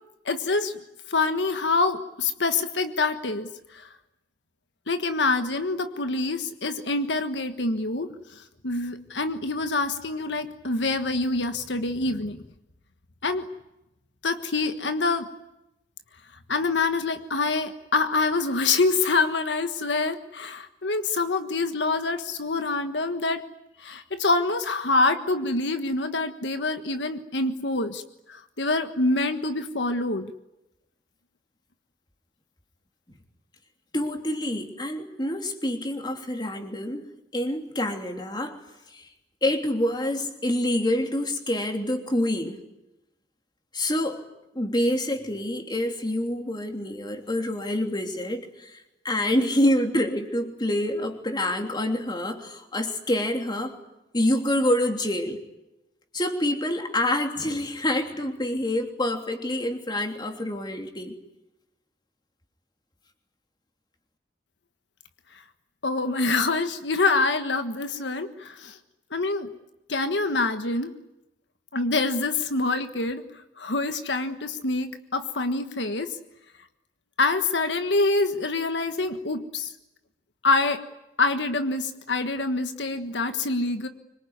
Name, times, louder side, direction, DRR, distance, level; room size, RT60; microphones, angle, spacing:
voice 1, 0.2-0.8 1.1-3.9 4.9-12.4 13.2-13.4 14.2-15.3 16.5-23.4 23.8-28.0 28.3-30.3 65.3-65.4 65.8-68.8 69.1-69.5 69.9-70.9 71.7-73.2 73.6-76.2 77.2-79.7 80.4-80.8 81.2-83.9, left 3 dB, 80° left, 8 dB, 1.5 m, -26 dB
voice 2, 33.9-37.1 37.3-38.6 38.9-39.1 39.4-42.6 43.7-44.2 44.5-53.8 54.1-55.4 56.1-61.1, left 1 dB, 25° left, 4 dB, 3.2 m, -27 dB
25.5 x 23.5 x 9.6 m, 0.93 s
head